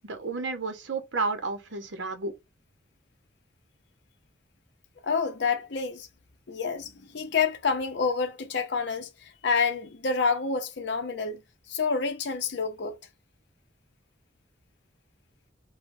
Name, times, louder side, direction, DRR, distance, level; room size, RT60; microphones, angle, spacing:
voice 1, 0.0-2.3, right 3 dB, 80° right, 0.8 m, -31 dB
voice 2, 5.0-6.1 6.5-11.4 11.7-13.0, left 5 dB, 65° left, 0.6 m, -28 dB
3.2 x 2.2 x 2.5 m
head